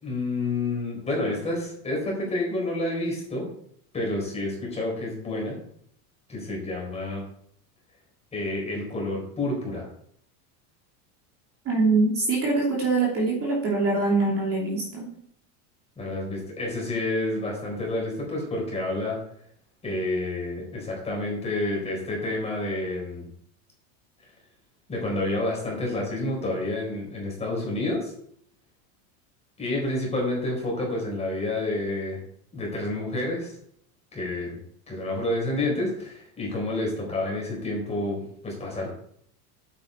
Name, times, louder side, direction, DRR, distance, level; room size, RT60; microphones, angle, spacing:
voice 1, 0.0-3.5 3.9-5.6 6.3-7.2 8.3-9.9 16.0-19.2 19.8-23.3 24.9-28.1 29.6-32.2 32.5-33.6 34.1-34.6 34.9-38.9, left 2 dB, 15° left, -2 dB, 4.3 m, -29 dB
voice 2, 11.6-15.1, right 3 dB, 30° right, -3 dB, 2.8 m, -23 dB
10.5 x 8.6 x 4.5 m, 0.67 s
cardioid pair, 165°, 45 cm